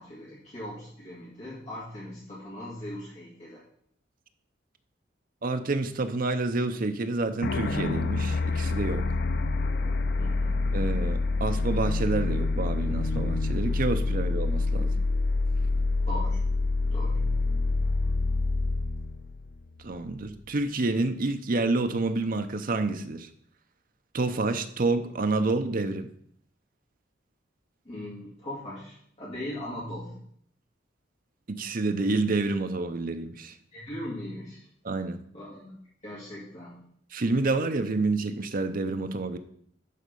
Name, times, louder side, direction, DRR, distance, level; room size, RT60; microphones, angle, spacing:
voice 1, 0.0-3.6 10.2-10.6 16.1-16.4 16.9-17.2 27.8-30.2 33.7-34.6 35.3-35.7 36.0-36.9, left 1 dB, 35° left, -8 dB, 2.4 m, -39 dB
voice 2, 5.4-9.1 10.7-15.0 19.8-23.3 24.1-26.1 31.5-33.5 34.8-35.2 37.1-39.4, right 3 dB, 50° right, 8 dB, 0.7 m, -28 dB
sound 1, 7.4-20.1, left 3 dB, 60° left, 0.6 m, -27 dB
11.0 x 4.2 x 5.3 m, 0.66 s
head